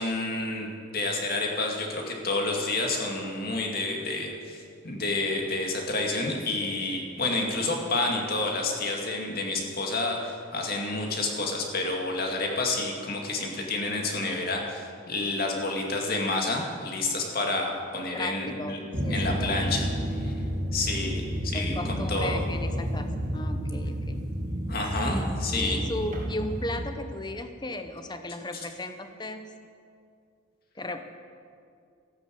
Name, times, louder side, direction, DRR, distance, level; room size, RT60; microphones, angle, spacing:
voice 1, 0.0-18.8 19.1-19.9 20.1-20.3 20.7-22.4 24.7-25.8 28.5-28.6, left 2 dB, 45° left, 1 dB, 2.4 m, -29 dB
voice 2, 18.1-19.6 21.5-24.2 25.0-29.5 30.8-31.0, left 1 dB, 20° left, 8 dB, 0.9 m, -36 dB
sound 1, 18.9-26.8, equal, 35° right, 2.5 m, -30 dB
14.5 x 11.5 x 7.8 m, 2.4 s
head